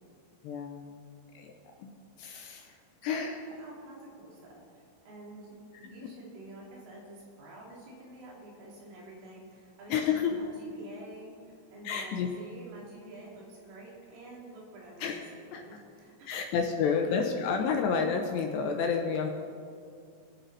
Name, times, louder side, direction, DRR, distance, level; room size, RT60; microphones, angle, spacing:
voice 1, 0.4-0.9 1.3-1.5 1.8-2.8 3.0-3.3 9.9-10.3 11.8-12.3 15.0-15.6 16.3-19.3, left 6 dB, 80° left, 3 dB, 2.7 m, -30 dB
voice 2, 3.1-16.4 16.6-17.2 17.6-17.7, right 1 dB, 85° right, -4 dB, 5.3 m, -48 dB
23.5 x 8.3 x 4.0 m, 2.3 s
omnidirectional pair, 5.6 m